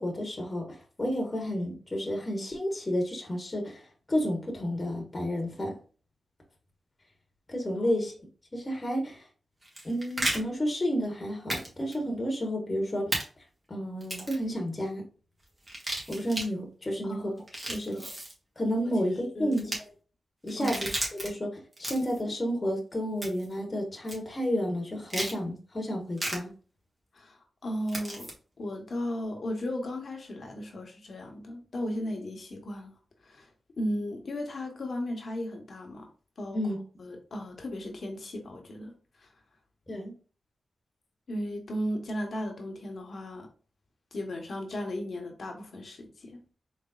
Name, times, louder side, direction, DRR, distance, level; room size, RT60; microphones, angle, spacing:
voice 1, 0.0-3.8 4.1-5.7 7.5-8.1 8.5-9.2 9.8-13.1 13.7-15.0 16.1-17.3 17.7-17.9 18.6-19.6 20.4-20.7 21.1-21.5 21.8-26.5 36.5-36.8 39.9-40.1, equal, 30° left, 1.3 m, -31 dB
sound 1, 9.6-10.4 11.5-11.7 11.9-12.0 13.1-13.2 14.0-14.4 15.6-16.5 17.4-18.3 19.5-19.8 20.5-21.3 21.7-22.2 23.2-23.5 24.1-24.2 25.1-25.4 26.2-26.4 27.9-28.3, right 1 dB, 30° right, 1.7 m, -33 dB
voice 2, 17.0-18.1 19.3-19.8 20.6-20.8 27.1-28.3 28.6-33.0 33.2-33.5 33.8-36.1 36.4-36.6 37.0-38.9 39.2-39.3 41.3-43.5 44.1-46.5, equal, 60° left, 1.1 m, -36 dB
4.1 x 3.3 x 2.4 m
cardioid pair, 65°, 0 cm